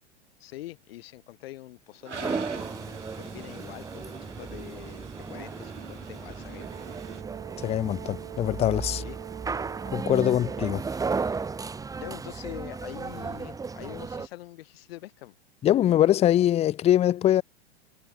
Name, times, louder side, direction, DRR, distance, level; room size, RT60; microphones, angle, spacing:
voice 1, 0.4-6.9 8.9-9.2 12.0-15.4, left 16 dB, 60° left, 7.0 m, -44 dB
Toilet flush, 2.0-7.2, right 5 dB, 90° right, 3.2 m, -43 dB
sound 1, 2.1-14.3, right 4 dB, 10° right, 1.2 m, -35 dB
Brass instrument, 6.6-10.8, right 14 dB, 60° right, 3.6 m, -43 dB
voice 2, 7.6-9.0 9.9-10.9 15.6-17.4, left 12 dB, 20° left, 0.6 m, -23 dB
hypercardioid pair, 105°, 34 cm